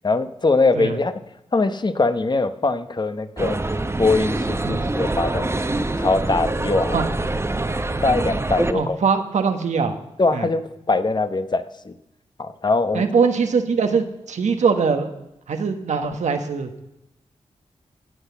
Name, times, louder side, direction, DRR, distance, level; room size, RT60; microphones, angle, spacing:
voice 1, 0.0-1.2 1.5-3.6 4.0-7.0 8.0-9.0 10.2-11.9 12.4-13.1, left 3 dB, 40° left, 10 dB, 0.9 m, -22 dB
sound 1, 3.4-8.7, right 2 dB, 20° right, 1.0 m, -25 dB
voice 2, 8.7-10.0 10.3-10.5 12.9-15.1 15.5-16.7, right 5 dB, 85° right, 6 dB, 1.3 m, -22 dB
14.0 x 8.3 x 6.9 m, 0.84 s
cardioid pair, 60°, 12 cm